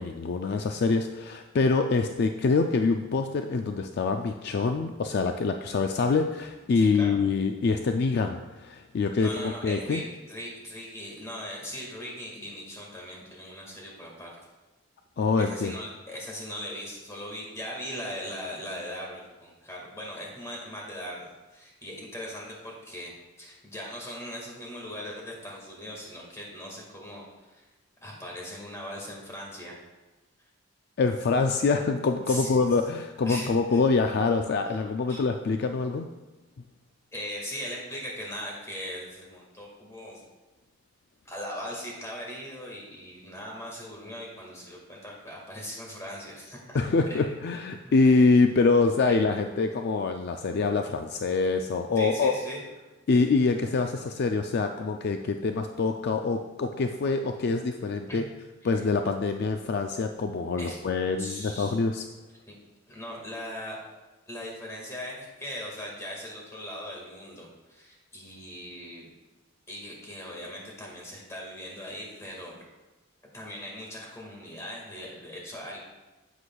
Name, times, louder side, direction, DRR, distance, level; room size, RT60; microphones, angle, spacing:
voice 1, 0.0-10.0 15.2-15.7 31.0-36.1 46.7-52.3 53.1-58.2 58.6-62.0, left 4 dB, 50° left, 6 dB, 0.3 m, -25 dB
voice 2, 6.7-7.2 9.2-14.3 15.4-23.1 23.4-27.7 28.0-29.8 32.3-32.7 33.3-33.8 34.6-34.8 35.1-35.2 37.1-40.2 41.3-46.8 47.1-47.2 47.8-48.1 49.1-49.2 52.0-52.6 53.1-53.2 58.1-58.2 58.6-58.9 60.6-60.8 61.2-61.8 62.5-62.6 62.9-63.8 64.3-69.1 69.7-72.6 73.3-75.8, equal, 15° left, -2 dB, 1.7 m, -39 dB
9.8 x 8.0 x 2.3 m, 1.1 s
head